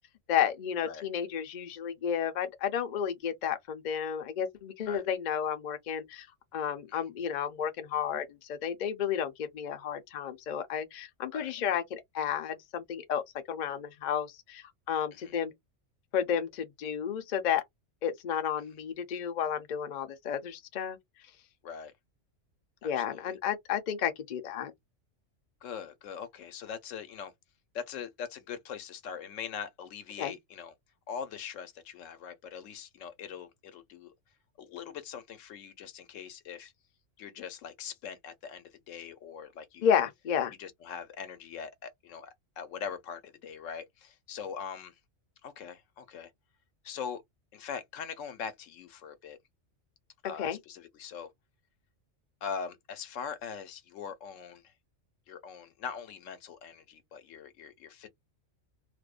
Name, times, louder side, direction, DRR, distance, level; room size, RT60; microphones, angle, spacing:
voice 1, 0.3-6.3 6.5-13.2 13.5-15.5 16.1-17.6 18.0-21.0 22.8-24.7 30.2-30.3 39.8-40.5 50.4-50.6, left 8 dB, 55° left, 0.5 m, -32 dB
voice 2, 22.8-23.4 25.6-27.3 27.7-30.7 31.1-34.1 34.6-36.7 37.2-39.9 40.6-45.0 45.4-46.3 46.8-47.2 47.5-49.4 50.2-51.3 52.4-54.7 55.3-58.1, left 7 dB, 80° left, 1.0 m, -42 dB
2.5 x 2.1 x 2.3 m
omnidirectional pair, 1.3 m